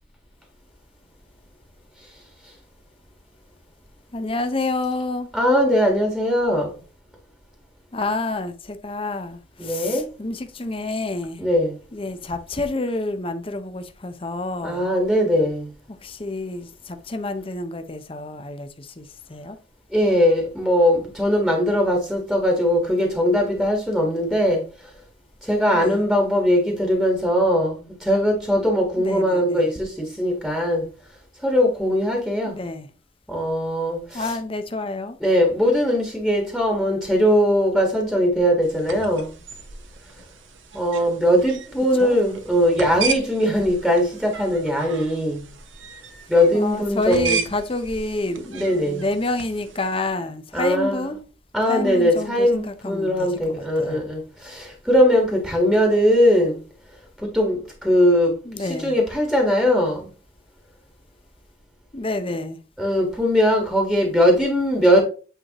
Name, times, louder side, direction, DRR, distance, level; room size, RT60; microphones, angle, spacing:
voice 1, 4.1-5.3 7.9-11.4 11.9-14.9 16.0-19.6 25.7-26.0 29.0-29.7 32.4-32.9 34.1-35.2 41.9-42.2 46.5-51.2 51.7-54.0 58.4-59.0 61.9-62.6, left 2 dB, 30° left, 0.7 m, -29 dB
voice 2, 5.3-6.7 9.6-10.0 11.4-11.8 14.6-15.7 19.9-24.6 25.4-30.8 31.4-32.6 33.3-34.3 35.2-39.3 40.7-45.4 46.3-47.4 48.5-49.1 50.5-51.1 51.5-56.6 57.2-60.1 62.8-65.0, equal, ahead, 1.5 m, -20 dB
sound 1, 38.6-50.0, right 5 dB, 80° right, 1.1 m, -35 dB
8.9 x 4.6 x 3.0 m
head